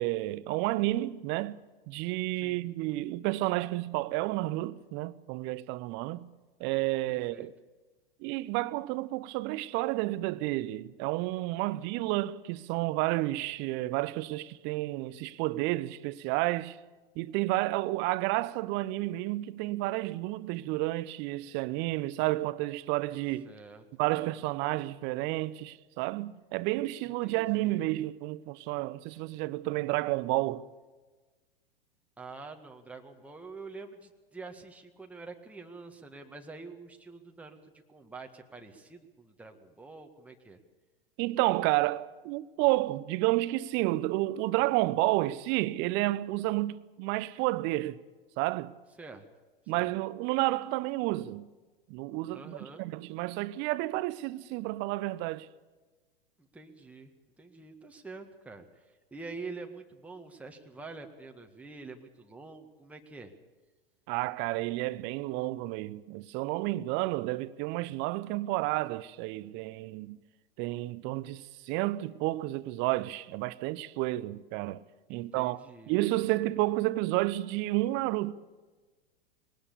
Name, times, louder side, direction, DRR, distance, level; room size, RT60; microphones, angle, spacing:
voice 1, 0.0-1.6 1.9-6.3 6.6-7.5 8.2-16.8 17.2-23.5 24.0-30.6 41.2-48.0 48.4-48.7 49.7-51.5 51.9-55.5 64.1-70.2 70.6-74.8 75.1-75.6 75.9-78.3, right 18 dB, 40° right, 0.9 m, -31 dB
voice 2, 2.3-2.7 7.1-7.5 23.4-23.8 27.0-27.9 32.2-40.6 49.0-49.3 49.7-49.9 52.3-52.9 56.4-57.1 57.4-63.3 75.1-76.0, right 3 dB, 5° right, 1.8 m, -46 dB
21.5 x 19.0 x 7.0 m
figure-of-eight pair, 95°, 30 cm